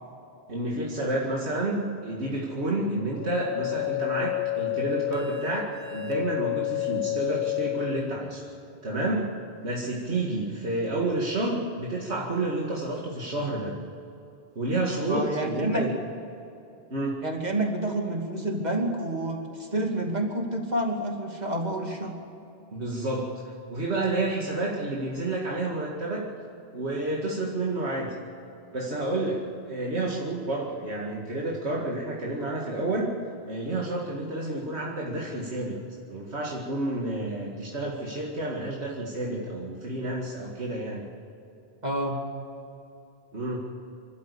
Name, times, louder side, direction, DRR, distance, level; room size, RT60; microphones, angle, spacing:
voice 1, 0.5-8.5 8.8-9.2 9.6-13.7 14.6-15.9 16.9-17.2 22.7-23.3 23.7-26.3 26.7-28.1 28.7-33.1 33.5-35.8 36.1-41.1 43.3-43.6, right 2 dB, 85° right, -3 dB, 2.5 m, -30 dB
sound 1, 3.1-8.1, left 15 dB, 60° left, 1.5 m, -30 dB
voice 2, 15.1-15.8 17.2-22.2 41.8-42.2, right 1 dB, 40° right, 2 dB, 2.7 m, -28 dB
26.5 x 12.5 x 8.5 m, 2.8 s
omnidirectional pair, 1.1 m